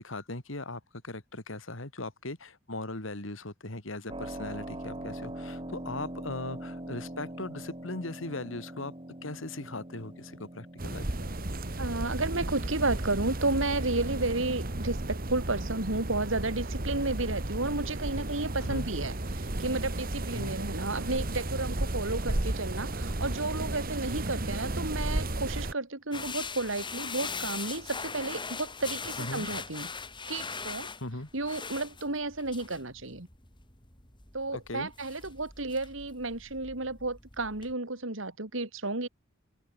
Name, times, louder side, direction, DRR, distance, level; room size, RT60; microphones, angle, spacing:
voice 1, 0.0-8.9 9.2-11.3 18.7-18.9 20.3-20.6 29.2-29.5 31.0-31.3 34.5-34.9, left 2 dB, 75° left, 2.9 m, -39 dB
Keyboard (musical), 4.1-16.6, right 1 dB, 25° right, 3.5 m, -44 dB
sound 1, 10.8-25.7, right 1 dB, 45° right, 1.9 m, -33 dB
voice 2, 11.7-29.9 30.3-33.3 34.3-39.1, right 2 dB, 75° right, 3.1 m, -32 dB
sound 2, 26.1-37.7, left 5 dB, 25° left, 6.6 m, -41 dB
open air
head